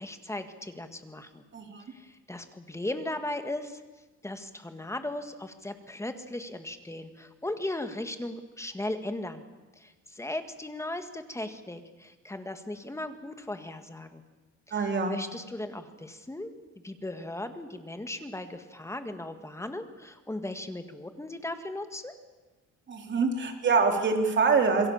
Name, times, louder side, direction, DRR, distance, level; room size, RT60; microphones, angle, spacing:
voice 1, 0.0-1.4 1.9-3.8 4.2-9.4 9.8-14.2 14.7-16.5 16.8-22.1, left 1 dB, 10° left, 8 dB, 1.9 m, -37 dB
voice 2, 1.5-1.9 14.7-15.2 22.9-24.9, right 4 dB, 35° right, 4 dB, 3.7 m, -25 dB
27.5 x 23.0 x 7.3 m, 1.2 s
cardioid pair, 135°, 31 cm